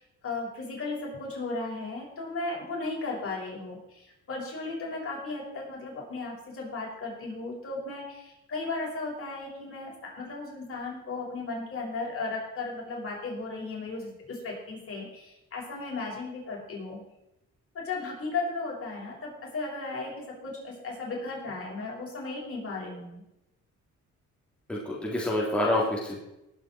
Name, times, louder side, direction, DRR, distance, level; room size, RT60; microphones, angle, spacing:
voice 1, 0.0-17.0 17.7-23.2, left 3 dB, 50° left, -3 dB, 6.0 m, -35 dB
voice 2, 24.7-26.2, left 1 dB, 5° left, -5 dB, 3.6 m, -27 dB
19.0 x 8.0 x 4.6 m, 0.91 s
cardioid pair, 90°, 30 cm